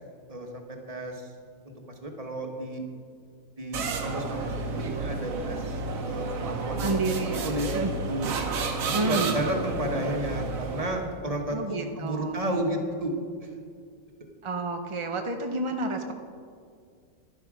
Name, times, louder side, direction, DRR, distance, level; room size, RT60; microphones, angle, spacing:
voice 1, 0.3-1.3 1.6-1.7 2.0-2.8 3.6-3.8 4.0-5.8 6.0-7.0 7.4-7.7 8.1-8.3 8.7-13.1, right 1 dB, 25° right, 2 dB, 1.4 m, -32 dB
sound 1, 3.7-11.1, right 3 dB, 70° right, 1.4 m, -31 dB
voice 2, 6.8-7.9 8.9-9.3 11.5-12.4 14.4-16.1, right 3 dB, 45° right, 4 dB, 0.4 m, -30 dB
11.5 x 11.5 x 4.9 m, 2.2 s
omnidirectional pair, 1.5 m